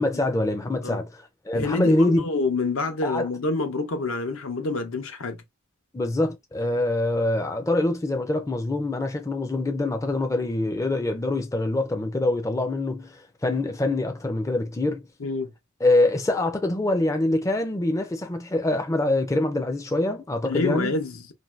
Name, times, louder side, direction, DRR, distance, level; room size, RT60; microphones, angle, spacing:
voice 1, 0.0-2.2 3.0-3.3 5.9-15.0 15.8-20.9, left 2 dB, 15° left, 0.4 m, -24 dB
voice 2, 1.5-5.4 15.2-15.5 20.5-21.2, left 3 dB, 70° left, 0.7 m, -27 dB
2.6 x 2.2 x 3.1 m
head